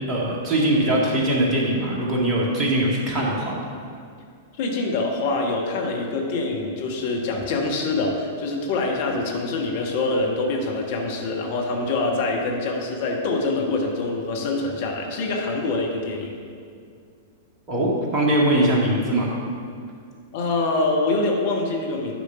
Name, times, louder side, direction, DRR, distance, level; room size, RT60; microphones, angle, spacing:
voice 1, 0.1-3.6 17.7-19.3, right 1 dB, 30° right, -3 dB, 2.1 m, -21 dB
voice 2, 4.6-16.4 20.3-22.1, left 3 dB, 50° left, 0 dB, 1.2 m, -25 dB
10.5 x 5.1 x 5.8 m, 2.2 s
figure-of-eight pair, 100°, 0 cm